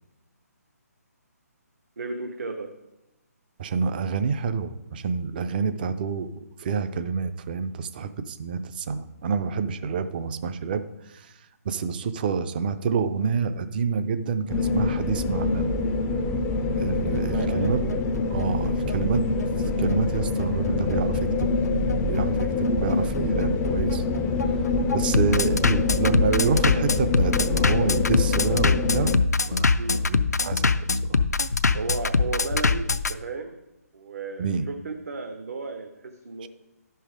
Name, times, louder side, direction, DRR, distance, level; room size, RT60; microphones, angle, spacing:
voice 1, 2.0-2.7 17.1-17.7 29.8-30.1 31.7-33.6 33.9-36.5, right 4 dB, 60° right, 4 dB, 0.9 m, -34 dB
voice 2, 3.6-10.8 11.7-15.7 16.7-17.9 18.3-19.3 19.8-21.5 22.0-24.0 24.9-29.1 29.5-31.2 34.4-34.7 36.4-36.5, right 5 dB, 35° right, 11 dB, 0.5 m, -28 dB
sound 1, 14.5-29.2, left 3 dB, 15° left, 0.4 m, -25 dB
Bass drum, 17.2-33.1, left 4 dB, 75° left, 0.4 m, -24 dB
11.5 x 5.5 x 4.9 m, 0.95 s
figure-of-eight pair, 140°, 9 cm